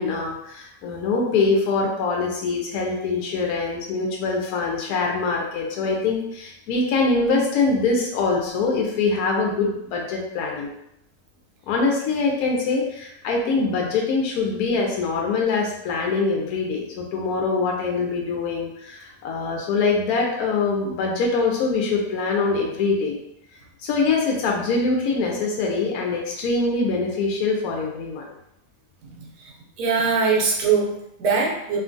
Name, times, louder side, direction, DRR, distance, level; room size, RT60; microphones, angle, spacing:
voice 1, 0.0-10.7 11.7-23.2 23.8-28.3, left 4 dB, 75° left, 0 dB, 1.0 m, -23 dB
voice 2, 29.2-29.5 29.8-31.8, right 5 dB, 80° right, -2 dB, 1.2 m, -22 dB
3.0 x 2.3 x 2.5 m, 0.79 s
omnidirectional pair, 1.6 m